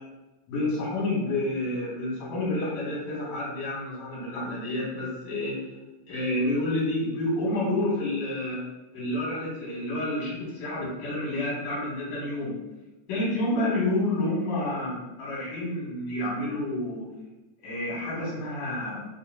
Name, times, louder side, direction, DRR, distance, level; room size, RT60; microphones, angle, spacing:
voice 1, 0.5-5.6 6.1-8.6 8.9-12.6 13.1-17.0 17.6-19.1, left 1 dB, 65° left, -6 dB, 2.3 m, -29 dB
4.7 x 2.8 x 2.5 m, 1.1 s
omnidirectional pair, 3.5 m